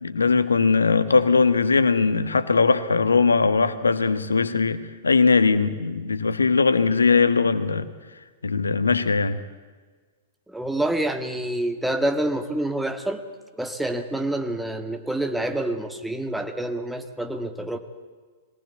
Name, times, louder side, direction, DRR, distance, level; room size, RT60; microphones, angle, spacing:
voice 1, 0.0-7.9 8.4-9.4, left 4 dB, 85° left, 13 dB, 1.3 m, -20 dB
voice 2, 10.5-13.2 13.5-17.8, right 1 dB, 5° right, 7 dB, 1.9 m, -27 dB
23.5 x 18.5 x 8.3 m, 1.4 s
figure-of-eight pair, 105°, 0 cm